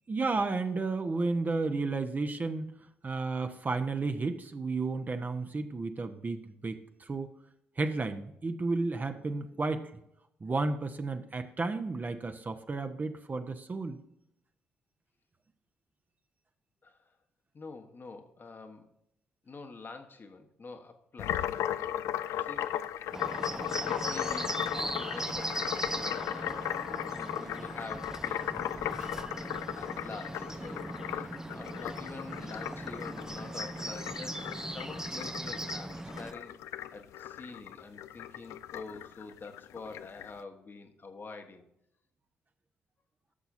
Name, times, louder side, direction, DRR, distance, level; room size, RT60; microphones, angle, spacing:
voice 1, 0.1-2.7 3.0-7.3 7.8-9.8 10.4-14.0, right 3 dB, 30° right, 7 dB, 1.0 m, -32 dB
voice 2, 17.5-18.9 19.4-21.5 22.4-22.7 23.8-26.6 27.1-36.6 36.9-41.6, left 4 dB, 40° left, 6 dB, 1.2 m, -47 dB
sound 1, 21.2-40.3, left 11 dB, 65° left, 0.4 m, -36 dB
Bird, 23.1-36.3, right 1 dB, 10° right, 0.6 m, -39 dB
13.5 x 7.0 x 2.6 m, 0.78 s
figure-of-eight pair, 40°, 5 cm